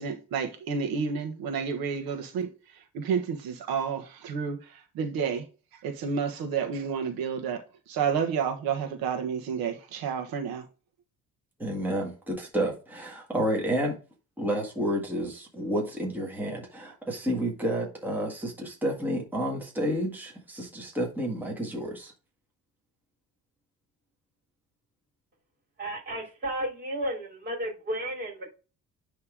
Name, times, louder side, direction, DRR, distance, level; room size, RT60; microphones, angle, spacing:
voice 1, 0.0-5.4 5.8-10.6, right 6 dB, 85° right, 1.4 m, -30 dB
voice 2, 11.6-13.9 14.4-22.1, equal, 5° right, 1.7 m, -30 dB
voice 3, 25.8-28.5, right 1 dB, 30° right, 3.2 m, -33 dB
10.0 x 3.5 x 3.6 m
cardioid pair, 155°, 35 cm